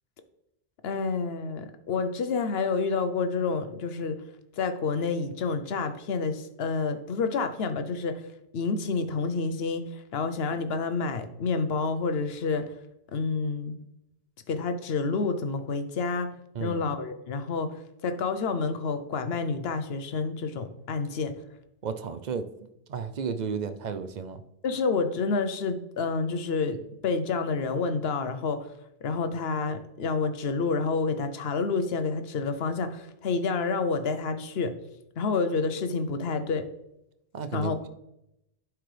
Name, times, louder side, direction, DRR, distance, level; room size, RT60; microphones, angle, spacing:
voice 1, 0.8-4.2 4.6-8.2 8.5-12.7 13.1-13.8 14.5-16.3 16.6-17.7 18.0-21.3 24.6-26.8 27.0-28.7 29.0-34.7 35.2-36.7 37.5-37.9, left 4 dB, 80° left, 9 dB, 1.0 m, -29 dB
voice 2, 21.8-22.5 22.9-24.4 37.3-37.9, right 6 dB, 55° right, 10 dB, 0.6 m, -33 dB
11.5 x 4.6 x 3.3 m, 0.83 s
omnidirectional pair, 1.0 m